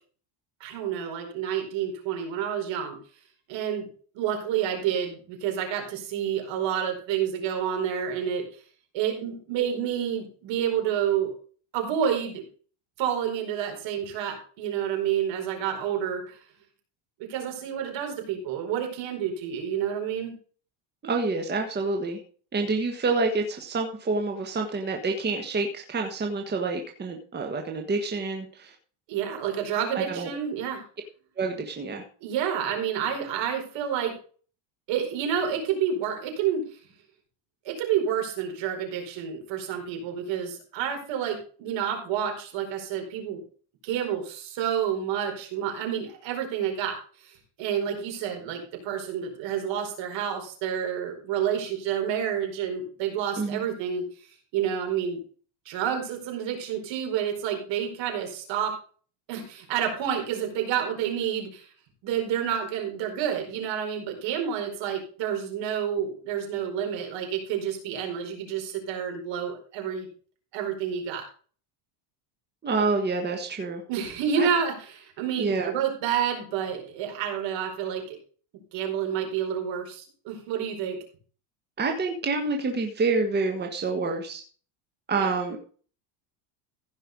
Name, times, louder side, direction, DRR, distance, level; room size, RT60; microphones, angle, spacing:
voice 1, 0.6-3.0 3.5-3.9 4.1-8.4 8.9-11.3 11.7-12.4 13.0-16.4 17.3-20.3 29.1-30.8 32.2-34.1 34.9-36.6 37.6-43.4 43.8-47.0 47.2-54.1 54.5-55.2 55.6-58.8 59.3-61.7 62.0-70.1 70.5-71.2 73.9-78.2 78.7-81.0 85.2-85.3, right 8 dB, 60° right, 3 dB, 4.7 m, -29 dB
voice 2, 21.0-22.2 22.5-28.7 29.9-30.3 31.4-32.0 53.4-53.7 72.6-73.8 74.4-74.5 75.4-75.7 81.8-84.4 85.1-85.6, right 3 dB, 20° right, 3 dB, 1.5 m, -27 dB
15.5 x 5.5 x 5.3 m, 0.42 s
cardioid pair, 140°, 49 cm